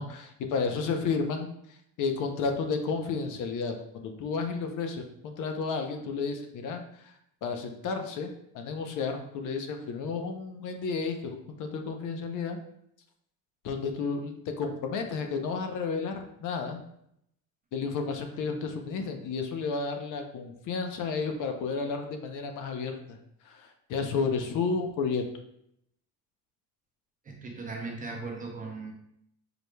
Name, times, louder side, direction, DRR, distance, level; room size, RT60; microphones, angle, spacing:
voice 1, 0.0-1.5 2.0-6.8 7.4-8.3 8.5-12.6 13.6-16.8 17.7-23.2 23.5-25.2, left 5 dB, 55° left, 5 dB, 0.7 m, -32 dB
voice 2, 27.3-28.9, right 3 dB, 20° right, 0 dB, 0.6 m, -38 dB
4.8 x 4.7 x 2.2 m, 0.73 s
cardioid pair, 165°, 38 cm